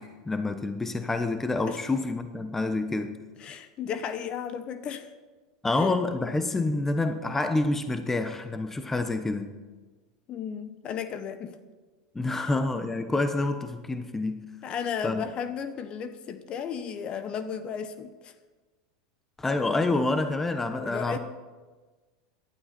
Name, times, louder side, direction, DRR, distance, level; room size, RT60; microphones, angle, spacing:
voice 1, 0.0-3.2 5.6-9.5 12.1-14.4 15.0-15.2 19.4-21.2, left 2 dB, 15° left, 9 dB, 1.1 m, -28 dB
voice 2, 3.4-5.1 5.7-6.0 10.3-11.5 12.3-12.5 14.6-18.3 20.8-21.2, left 7 dB, 40° left, 10 dB, 1.2 m, -34 dB
18.0 x 12.0 x 4.5 m, 1.3 s
hypercardioid pair, 95°, 2 cm